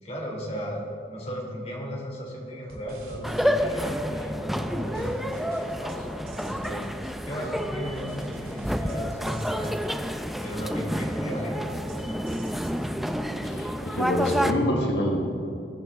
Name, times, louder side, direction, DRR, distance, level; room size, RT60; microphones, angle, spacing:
voice 1, 0.0-6.9 7.2-9.8 10.4-12.2, equal, 35° left, -1 dB, 2.8 m, -35 dB
sound 1, 2.7-4.2 4.6-11.4 11.7-13.2, equal, 55° right, 2.8 m, -44 dB
sound 2, 3.2-14.5, equal, ahead, 0.4 m, -29 dB
voice 2, 13.4-15.4, left 1 dB, 85° left, 0 dB, 1.4 m, -26 dB
21.0 x 9.2 x 3.6 m, 2.6 s
head